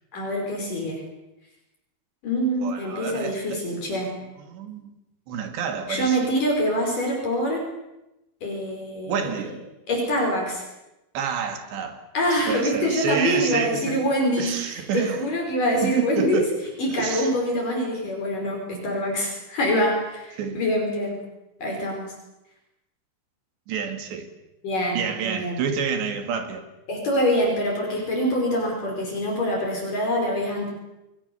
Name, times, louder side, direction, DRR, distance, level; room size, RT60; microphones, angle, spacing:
voice 1, 0.1-1.0 2.2-4.1 5.9-7.6 8.4-9.4 9.9-10.6 12.1-16.4 16.8-21.2 21.6-22.1 24.6-25.6 26.9-30.7, equal, 50° left, 6.6 m, -25 dB
voice 2, 2.6-3.6 4.4-4.9 5.3-6.2 9.1-9.5 11.1-12.0 12.5-14.0 14.4-15.2 15.8-16.5 16.9-17.3 20.4-20.6 23.7-24.3 24.9-26.7, right 6 dB, 80° right, 4.6 m, -28 dB
29.0 x 22.5 x 7.1 m
omnidirectional pair, 4.9 m